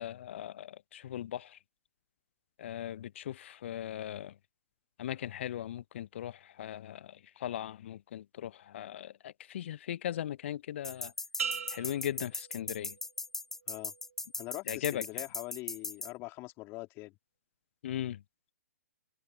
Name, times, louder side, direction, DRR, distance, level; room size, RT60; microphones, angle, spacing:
voice 1, 0.0-1.6 2.6-4.3 5.0-11.1 11.7-13.0 14.7-15.0 17.8-18.2, left 11 dB, 50° left, 0.3 m, -38 dB
sound 1, 10.8-16.1, left 3 dB, 5° left, 1.6 m, -38 dB
sound 2, 11.4-13.2 13.7-14.1, right 7 dB, 60° right, 1.9 m, -40 dB
voice 2, 14.4-17.1, left 22 dB, 30° left, 3.4 m, -43 dB
figure-of-eight pair, 120°, 8 cm